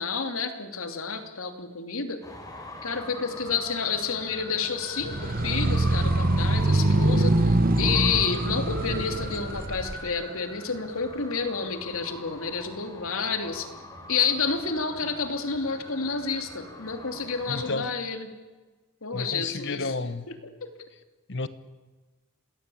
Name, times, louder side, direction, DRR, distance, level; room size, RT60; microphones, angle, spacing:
voice 1, 0.0-2.2 2.8-13.7 14.1-18.3 19.0-19.9 20.3-20.4 20.6-20.7, left 5 dB, 80° left, 3.0 m, -30 dB
Traffic noise roadway noise, 2.2-17.8, left 1 dB, 15° left, 4.7 m, -42 dB
sound 1, 5.0-10.0, right 2 dB, 40° right, 1.2 m, -24 dB
voice 2, 17.5-17.9 19.1-20.3 21.3-21.5, left 3 dB, 55° left, 1.2 m, -31 dB
27.5 x 19.5 x 8.6 m
head